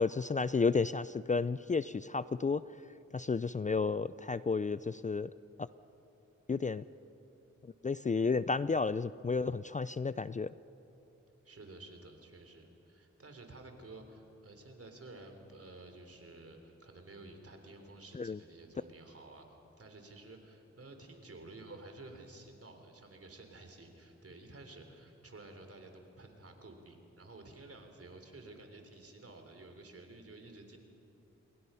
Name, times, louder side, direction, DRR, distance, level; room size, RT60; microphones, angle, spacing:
voice 1, 0.0-2.6 3.1-5.3 6.5-6.8 7.8-10.5 18.2-18.4, left 4 dB, 25° left, 16 dB, 0.4 m, -32 dB
voice 2, 11.4-19.5 19.8-30.8, right 2 dB, 50° right, 5 dB, 3.6 m, -52 dB
28.5 x 22.0 x 5.7 m, 2.9 s
cardioid pair, 55°, 29 cm